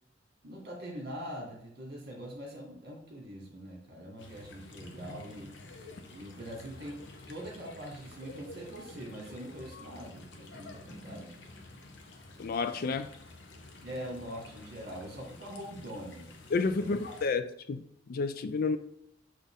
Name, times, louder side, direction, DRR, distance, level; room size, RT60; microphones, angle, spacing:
voice 1, 0.4-5.5 6.1-11.4 13.8-16.3 16.8-17.1, equal, 60° right, 1.8 m, -43 dB
sound 1, 4.2-17.3, left 2 dB, 70° left, 0.9 m, -50 dB
voice 2, 12.4-13.1 16.5-18.8, left 4 dB, 55° left, 0.4 m, -31 dB
6.3 x 4.1 x 3.6 m
head